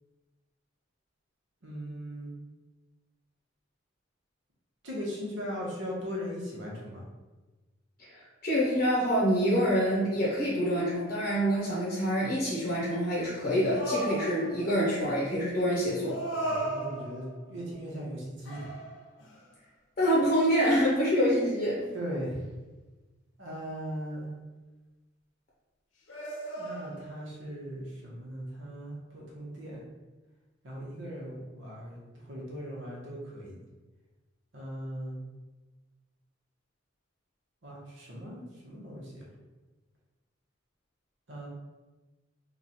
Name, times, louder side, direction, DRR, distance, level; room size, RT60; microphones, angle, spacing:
voice 1, 1.6-2.3 4.8-7.0 16.4-18.8 21.9-22.4 23.4-24.3 26.6-29.8 30.6-32.0 32.3-33.6 34.5-35.2 37.6-39.3 41.3-41.5, equal, 70° right, -3 dB, 1.0 m, -38 dB
voice 2, 8.0-16.2 20.0-21.9, equal, 40° left, -6 dB, 0.7 m, -26 dB
sound 1, 13.7-14.8 16.0-17.5 18.4-19.4 20.0-20.2 26.1-27.2, right 1 dB, 85° left, 0.8 m, -36 dB
3.1 x 2.4 x 4.0 m, 1.2 s
head